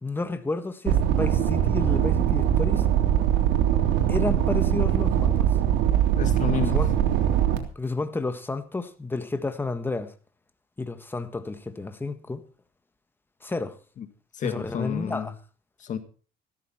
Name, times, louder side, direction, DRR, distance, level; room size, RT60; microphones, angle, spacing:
voice 1, 0.0-2.9 4.1-5.5 6.6-6.9 7.7-10.1 10.8-12.4 13.4-13.8 14.4-15.3, left 3 dB, 10° left, 1.6 m, -31 dB
sound 1, 0.9-7.6, right 10 dB, 90° right, 3.4 m, -22 dB
voice 2, 6.2-6.9 14.0-14.1 14.3-15.3 15.8-16.0, left 8 dB, 45° left, 1.9 m, -30 dB
15.5 x 13.5 x 4.4 m
cardioid pair, 135°, 18 cm